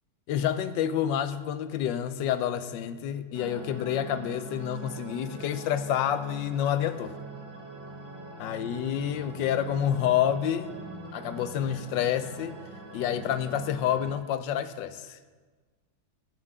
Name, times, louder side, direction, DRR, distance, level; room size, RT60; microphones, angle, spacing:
voice 1, 0.3-7.1 8.4-10.7 11.1-12.6 12.9-15.2, left 10 dB, 80° left, 12 dB, 1.2 m, -28 dB
sound 1, 3.3-14.1, right 2 dB, 40° right, 1.3 m, -43 dB
16.0 x 5.5 x 4.9 m, 1.4 s
omnidirectional pair, 2.1 m